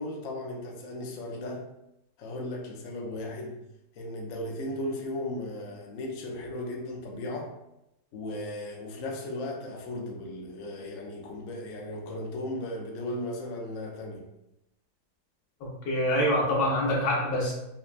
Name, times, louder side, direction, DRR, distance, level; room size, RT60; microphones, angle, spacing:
voice 1, 0.0-1.6 2.2-3.6 4.0-7.5 8.1-14.2, left 1 dB, 65° left, 0 dB, 0.8 m, -36 dB
voice 2, 15.9-17.5, equal, 85° left, -3 dB, 1.8 m, -25 dB
5.7 x 2.1 x 2.4 m, 0.88 s
omnidirectional pair, 2.1 m